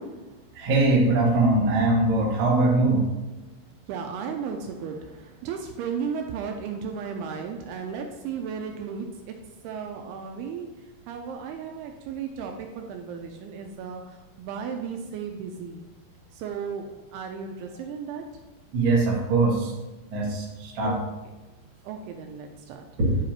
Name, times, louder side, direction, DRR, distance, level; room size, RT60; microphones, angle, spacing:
voice 1, 0.0-0.5 3.5-3.6 3.9-9.3 9.6-10.7 11.1-15.8 16.3-18.2 20.8-21.0 21.8-22.9, right 6 dB, 85° right, 3 dB, 2.5 m, -35 dB
voice 2, 0.5-3.1 18.7-19.7 20.1-21.0 23.0-23.1, right 2 dB, 65° right, -4 dB, 1.2 m, -22 dB
10.0 x 5.0 x 2.9 m, 1.1 s
omnidirectional pair, 4.7 m